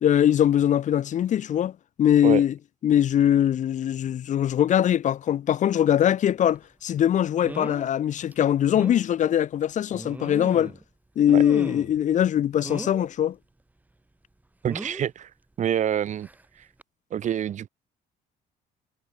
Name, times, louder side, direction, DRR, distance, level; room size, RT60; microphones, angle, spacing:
voice 1, 0.0-1.7 2.0-2.5 2.8-10.7 11.2-13.4, left 10 dB, 45° left, 0.7 m, -22 dB
sound 1, 6.5-6.6 7.4-7.9 8.3-8.4 8.7-9.0 9.9-10.8 11.3-12.0 12.6-13.1 14.6-15.1 16.2-16.4 16.8-16.9, right 2 dB, 10° right, 1.7 m, -37 dB
voice 2, 14.6-15.3 15.6-16.3 16.6-16.7 17.1-17.7, right 10 dB, 45° right, 0.8 m, -26 dB
cardioid pair, 110°, 17 cm